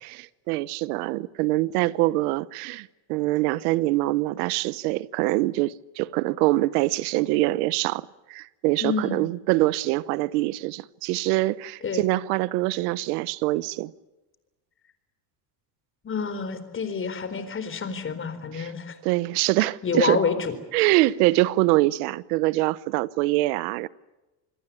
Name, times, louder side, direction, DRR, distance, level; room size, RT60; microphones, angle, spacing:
voice 1, 0.0-13.9 18.5-18.7 19.0-20.2 20.7-23.9, right 19 dB, 90° right, 1.0 m, -24 dB
voice 2, 8.8-9.2 11.8-12.1 16.0-19.0 19.6-20.5, left 5 dB, 25° left, 4.2 m, -28 dB
27.5 x 21.5 x 8.5 m
cardioid pair, 130°, 44 cm